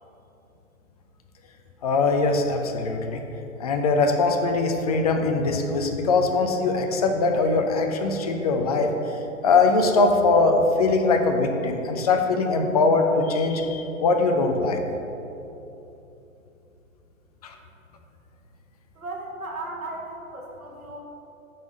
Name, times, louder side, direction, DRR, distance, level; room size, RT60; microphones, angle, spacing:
voice 1, 1.8-3.2 3.6-8.9 9.4-14.8 17.4-17.5, left 3 dB, 30° left, 4 dB, 0.4 m, -21 dB
voice 2, 18.9-21.0, right 2 dB, 90° right, -2 dB, 1.2 m, -36 dB
5.7 x 3.9 x 5.0 m, 2.9 s
figure-of-eight pair, 120°, 42 cm